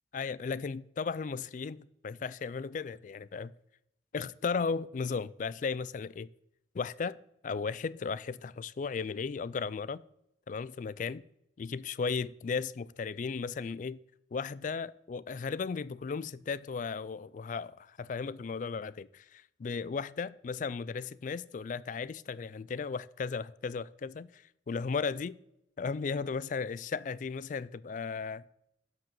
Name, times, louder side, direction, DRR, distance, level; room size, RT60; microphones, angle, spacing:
voice 1, 0.1-3.5 4.1-6.3 6.7-7.2 7.4-10.0 10.5-11.2 11.6-14.0 14.3-25.4 25.8-28.4, left 5 dB, 40° left, 0.3 m, -35 dB
11.5 x 4.8 x 7.6 m
head